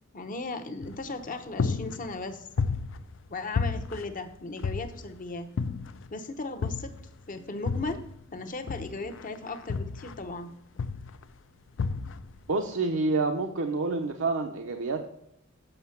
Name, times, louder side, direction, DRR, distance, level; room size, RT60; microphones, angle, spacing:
voice 1, 0.1-2.5 3.3-5.5 6.1-8.0 8.3-10.6, left 3 dB, 40° left, 7 dB, 0.8 m, -37 dB
sound 1, 0.8-1.3 1.6-3.3 3.6-5.2 5.6-6.1 6.6-8.2 8.7-10.4 10.8-11.2 11.8-12.4, left 5 dB, 65° left, 0.4 m, -32 dB
voice 2, 12.5-15.1, right 3 dB, 70° right, 3 dB, 0.7 m, -28 dB
7.9 x 5.5 x 5.7 m, 0.79 s
head